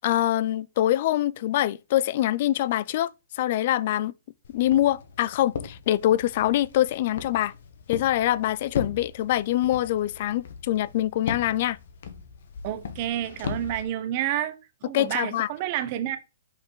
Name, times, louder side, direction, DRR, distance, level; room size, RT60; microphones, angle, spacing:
voice 1, 0.0-3.1 3.3-4.1 4.5-7.5 7.9-11.8 14.9-15.5, left 13 dB, 45° left, 0.4 m, -24 dB
Walk footsteps, 4.4-13.8, left 6 dB, 65° left, 1.3 m, -38 dB
voice 2, 12.6-14.6 14.8-16.2, right 11 dB, 35° right, 1.1 m, -29 dB
5.8 x 5.4 x 4.7 m
hypercardioid pair, 150°, 0 cm